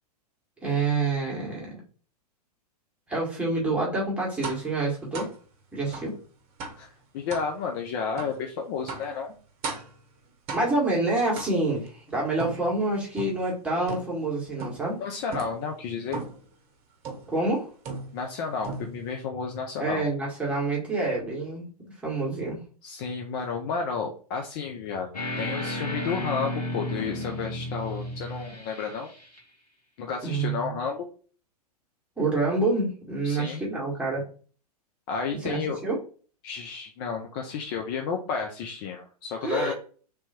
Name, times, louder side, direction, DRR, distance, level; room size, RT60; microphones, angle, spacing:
voice 1, 0.6-1.8 3.1-5.3 5.7-6.1 10.5-15.0 17.3-17.7 19.8-21.7 22.0-22.6 30.2-30.8 32.2-34.2 35.5-36.0 39.4-39.7, right 2 dB, 5° right, -4 dB, 1.6 m, -27 dB
sound 1, 4.4-4.7 5.1-5.4 5.9-6.1 6.6-6.9 7.3-7.5 8.2-8.4 8.9-9.2 9.6-10.0 10.5-10.9 11.3-11.9 12.4-13.5 13.9-14.3 14.6-15.0 15.3-15.6 16.1-16.5 17.0-17.4 17.8-18.3 18.6-19.1, right 4 dB, 30° right, 1.0 m, -37 dB
voice 2, 6.8-9.3 15.0-16.2 18.1-20.1 22.8-29.1 30.0-31.1 33.2-33.6 35.1-35.8 36.4-39.7, left 5 dB, 35° left, 3 dB, 0.5 m, -32 dB
sound 2, 25.1-29.4, left 1 dB, 75° left, 1.5 m, -33 dB
3.4 x 2.9 x 4.3 m, 0.40 s
figure-of-eight pair, 105°, 20 cm